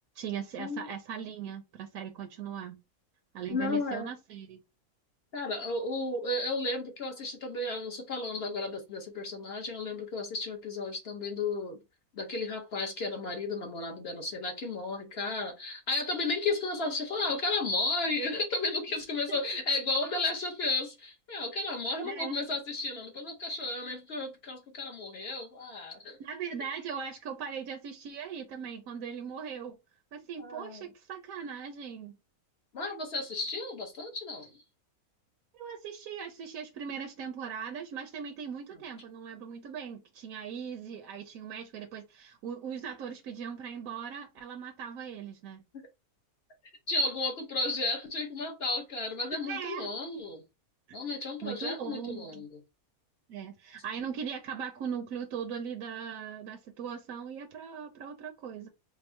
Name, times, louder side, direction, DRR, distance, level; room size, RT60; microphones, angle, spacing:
voice 1, 0.1-2.8 3.3-4.6 22.0-22.4 26.2-29.8 30.1-32.2 35.5-45.6 49.3-49.9 51.4-52.5 53.3-58.7, right 7 dB, 75° right, 1.0 m, -39 dB
voice 2, 3.5-4.1 5.3-11.8 12.1-26.2 30.4-30.8 32.7-34.5 46.9-50.4 50.9-52.6, left 3 dB, 55° left, 0.8 m, -33 dB
3.5 x 2.0 x 4.2 m
omnidirectional pair, 1.5 m